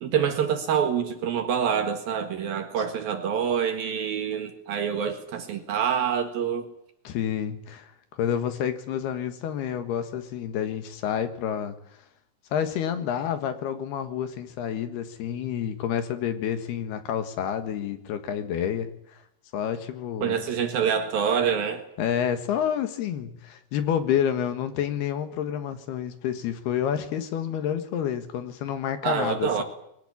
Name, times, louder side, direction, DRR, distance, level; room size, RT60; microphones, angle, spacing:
voice 1, 0.0-6.7 20.2-21.8 29.0-29.6, right 7 dB, 65° right, 3.2 m, -26 dB
voice 2, 7.0-11.8 12.5-19.2 19.5-20.4 22.0-29.6, left 9 dB, 70° left, 3.4 m, -29 dB
22.5 x 17.5 x 9.7 m
omnidirectional pair, 5.0 m